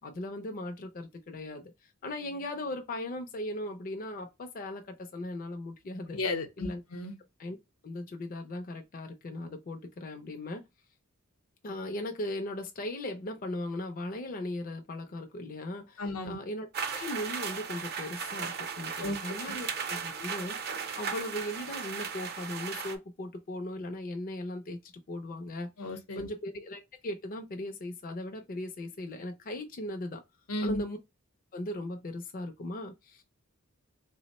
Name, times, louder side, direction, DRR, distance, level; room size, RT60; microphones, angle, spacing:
voice 1, 0.0-6.2 6.6-6.8 7.4-7.6 7.8-10.6 11.6-20.6 21.0-25.7 26.2-30.2 30.6-31.0 31.5-33.2, left 1 dB, 40° left, 0.4 m, -38 dB
voice 2, 6.1-7.2 16.0-16.4 19.0-19.4 25.8-26.3 30.5-30.8, left 2 dB, 90° left, 0.8 m, -34 dB
sound 1, 16.7-23.0, right 6 dB, 50° right, 0.5 m, -36 dB
3.5 x 2.0 x 4.0 m
head